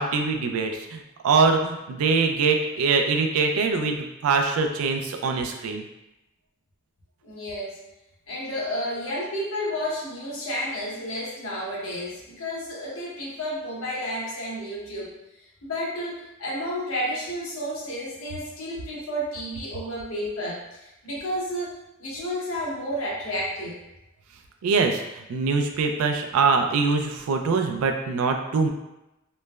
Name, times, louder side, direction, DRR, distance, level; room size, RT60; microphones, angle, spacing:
voice 1, 0.0-5.8 24.6-28.7, right 4 dB, 90° right, 4 dB, 0.3 m, -23 dB
voice 2, 7.2-7.8 8.3-23.8, equal, 80° left, -4 dB, 0.8 m, -31 dB
3.1 x 2.0 x 2.2 m, 0.94 s
head